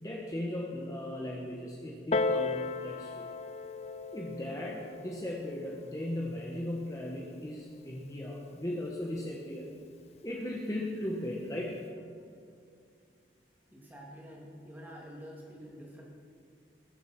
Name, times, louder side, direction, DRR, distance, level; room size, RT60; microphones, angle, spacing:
voice 1, 0.0-3.2 4.1-9.7 10.2-11.8, left 1 dB, 20° left, -3 dB, 1.3 m, -37 dB
Piano, 2.1-7.3 8.1-8.2, left 3 dB, 35° left, 0.4 m, -36 dB
voice 2, 13.7-16.0, equal, 10° right, -3 dB, 2.6 m, -48 dB
21.0 x 7.9 x 5.9 m, 2.3 s
head